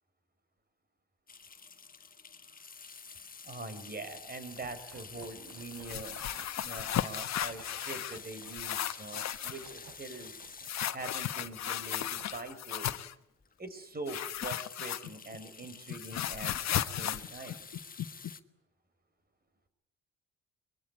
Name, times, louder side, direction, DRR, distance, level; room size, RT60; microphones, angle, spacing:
sound 1, 1.3-12.6 13.1-13.2 13.4-13.6 13.9-18.4, left 5 dB, 30° left, 1.5 m, -50 dB
voice 1, 3.4-10.3 10.9-13.0 13.6-17.6, right 3 dB, 30° right, 11 dB, 4.8 m, -44 dB
sound 2, 4.5-12.5, right 6 dB, 80° right, 3.6 m, -56 dB
sound 3, 5.7-8.2 8.5-9.6 10.6-13.1 14.1-15.4 15.6-18.3, left 11 dB, 60° left, 1.2 m, -35 dB
24.5 x 22.0 x 9.7 m, 0.79 s
cardioid pair, 90°, 30 cm